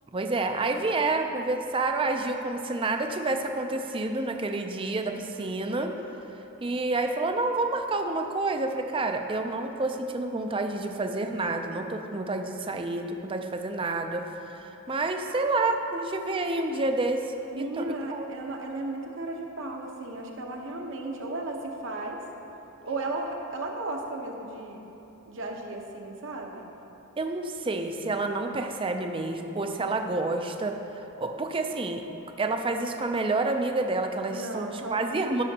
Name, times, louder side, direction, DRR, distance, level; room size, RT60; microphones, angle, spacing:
voice 1, 0.1-5.9 6.6-14.2 14.5-17.2 17.6-17.8 18.1-18.3 27.2-30.8 31.2-32.0 32.4-35.4, right 2 dB, 25° right, 5 dB, 0.5 m, -29 dB
voice 2, 17.5-22.2 22.8-24.9 25.3-26.7 34.3-35.2, right 2 dB, 65° right, 1 dB, 1.0 m, -35 dB
15.0 x 6.3 x 2.9 m, 3.0 s
head